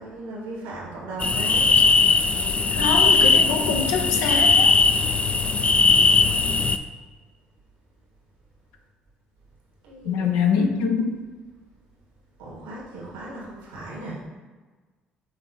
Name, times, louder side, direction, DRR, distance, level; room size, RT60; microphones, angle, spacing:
voice 1, 0.0-1.8 9.8-10.7 12.4-14.2, right 1 dB, 85° right, -4 dB, 1.8 m, -37 dB
sound 1, 1.2-6.8, left 4 dB, 30° left, 0.4 m, -19 dB
voice 2, 2.7-4.7 10.1-11.1, left 6 dB, 80° left, 3 dB, 0.7 m, -24 dB
6.3 x 3.7 x 4.1 m, 1.3 s
hypercardioid pair, 60°, 4 cm